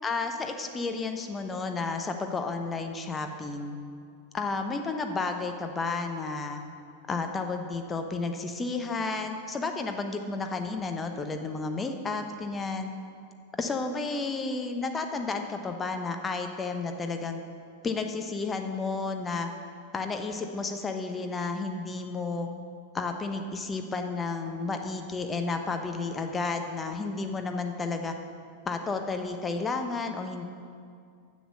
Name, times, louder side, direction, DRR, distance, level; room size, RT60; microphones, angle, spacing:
voice 1, 0.0-3.8 4.3-6.6 7.1-12.9 13.6-17.4 17.8-19.5 19.9-22.5 22.9-28.1 28.6-30.5, left 3 dB, 20° left, 5 dB, 0.9 m, -32 dB
7.4 x 7.0 x 7.4 m, 2.2 s
figure-of-eight pair, 90°, 0 cm